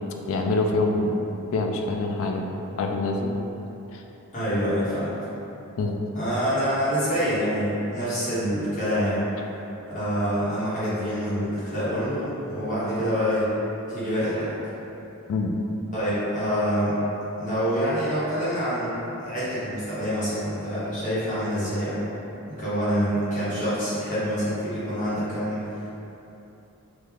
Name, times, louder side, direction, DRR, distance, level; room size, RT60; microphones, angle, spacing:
voice 1, 0.3-1.1 1.5-3.3 3.9-4.0 5.8-6.0 15.3-15.5, left 2 dB, 60° left, 2 dB, 0.3 m, -25 dB
voice 2, 4.3-5.2 6.1-9.2 9.9-13.5 13.9-14.6 15.9-17.0 17.4-22.1 22.6-25.9, equal, 35° left, -11 dB, 1.2 m, -26 dB
3.1 x 2.4 x 3.6 m, 3.0 s
head